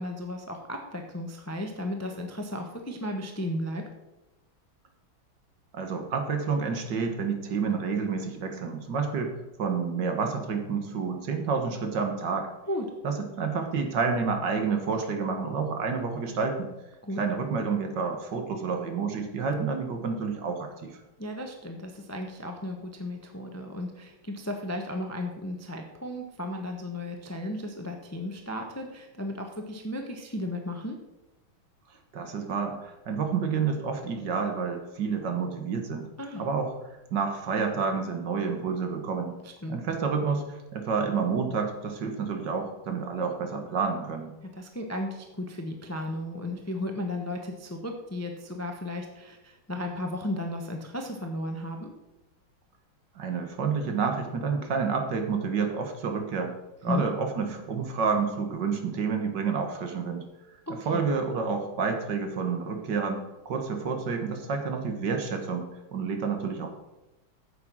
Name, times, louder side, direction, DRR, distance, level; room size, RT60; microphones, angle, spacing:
voice 1, 0.0-3.8 12.7-12.9 17.0-17.2 21.2-31.0 36.2-36.4 39.4-39.8 44.4-51.9 56.9-57.0 60.7-61.0, left 1 dB, 10° left, 4 dB, 0.7 m, -34 dB
voice 2, 5.7-9.3 9.6-12.5 13.0-16.7 17.2-20.9 32.1-36.1 36.4-36.7 37.1-39.4 39.7-44.3 53.2-56.5 56.8-60.3 60.9-66.7, right 5 dB, 60° right, 5 dB, 1.9 m, -29 dB
9.3 x 7.5 x 6.2 m, 0.98 s
omnidirectional pair, 2.2 m